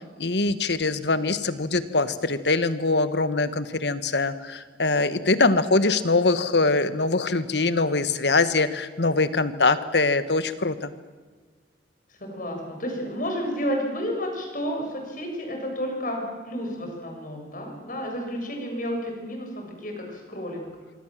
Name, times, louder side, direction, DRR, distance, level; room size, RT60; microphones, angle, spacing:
voice 1, 0.2-10.9, left 3 dB, 70° left, 12 dB, 1.5 m, -23 dB
voice 2, 6.0-6.5 12.2-20.7, equal, 50° left, 2 dB, 7.1 m, -31 dB
25.5 x 24.5 x 7.7 m, 1.5 s
head